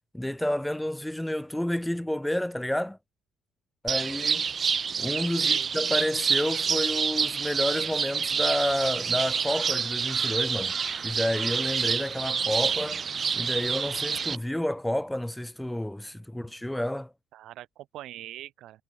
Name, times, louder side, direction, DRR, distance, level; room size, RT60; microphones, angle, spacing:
voice 1, 0.1-3.0 3.8-4.5 5.0-10.7 11.0-13.1 13.3-17.1, left 1 dB, 5° left, 1.7 m, -30 dB
sound 1, 3.9-14.4, right 6 dB, 35° right, 3.6 m, -28 dB
voice 2, 5.3-5.7 17.3-18.8, right 14 dB, 65° right, 7.7 m, -43 dB
cardioid pair, 105°, 0 cm